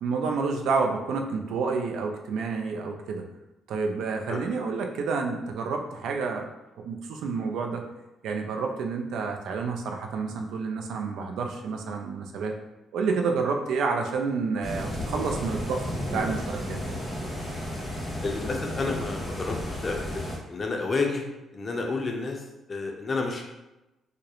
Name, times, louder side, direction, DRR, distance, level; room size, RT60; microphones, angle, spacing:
voice 1, 0.0-3.2 3.7-6.5 6.8-7.8 8.2-12.5 12.9-15.9 16.1-16.9, right 4 dB, 80° right, 3 dB, 0.3 m, -29 dB
sound 1, 14.6-20.4, equal, ahead, 0.9 m, -33 dB
voice 2, 18.2-21.2 21.5-22.4 22.7-23.4, left 3 dB, 35° left, 1 dB, 0.5 m, -30 dB
2.3 x 2.0 x 2.8 m, 0.98 s
cardioid pair, 90°, 0 cm